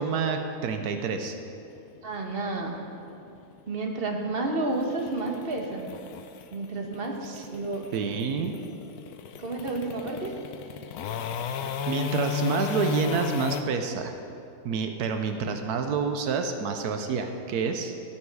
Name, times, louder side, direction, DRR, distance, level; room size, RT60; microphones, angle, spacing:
voice 1, 0.0-1.4 7.2-7.5 7.9-8.6 11.9-14.1 14.6-17.9, right 5 dB, 85° right, 6 dB, 1.2 m, -28 dB
sound 1, 1.7-13.6, left 8 dB, 80° left, 1.1 m, -34 dB
voice 2, 2.0-2.8 3.7-5.9 6.5-7.9 9.4-10.3, right 2 dB, 40° right, 2 dB, 1.3 m, -31 dB
16.0 x 7.0 x 4.8 m, 2.7 s
omnidirectional pair, 1.6 m